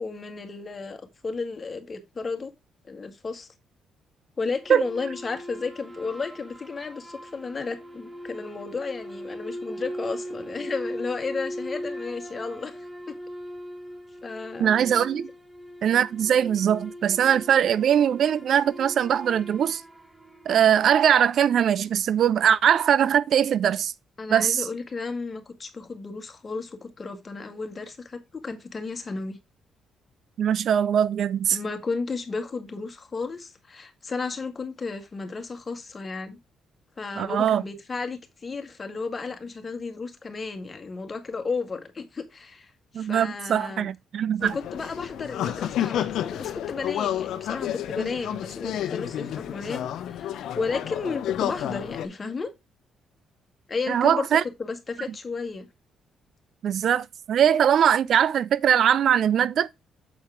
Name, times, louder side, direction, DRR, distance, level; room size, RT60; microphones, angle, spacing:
voice 1, 0.0-2.5 2.8-3.5 4.4-12.8 13.1-13.2 14.2-14.7 24.2-29.4 31.5-36.4 37.0-43.9 44.4-52.5 53.7-54.3 54.6-55.7, left 4 dB, 30° left, 1.9 m, -33 dB
sound 1, 4.6-21.2, equal, 10° right, 1.0 m, -40 dB
voice 2, 14.6-15.3 15.8-19.8 20.5-23.9 24.3-24.7 30.4-31.6 37.2-37.6 42.9-44.5 53.9-54.4 56.6-59.7, right 9 dB, 65° right, 0.4 m, -21 dB
sound 2, 44.4-52.1, left 11 dB, 80° left, 0.8 m, -30 dB
7.4 x 4.3 x 4.9 m
cardioid pair, 90°, 0 cm